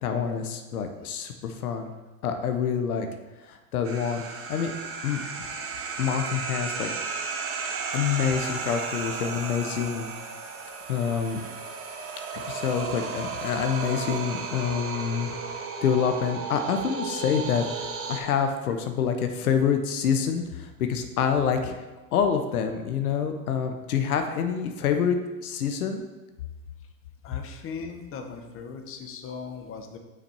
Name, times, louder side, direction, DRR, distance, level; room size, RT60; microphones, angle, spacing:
voice 1, 0.0-1.9 2.2-3.1 3.5-4.7 5.0-5.4 6.0-6.9 7.9-10.1 10.9-11.4 12.5-15.4 15.8-21.8 22.1-26.0, left 7 dB, 85° left, 6 dB, 0.7 m, -27 dB
sound 1, 3.8-18.2, right 5 dB, 30° right, 0.9 m, -34 dB
voice 2, 27.2-30.0, left 5 dB, 30° left, 5 dB, 0.8 m, -38 dB
6.1 x 4.1 x 4.3 m, 1.1 s
hypercardioid pair, 90°, 43 cm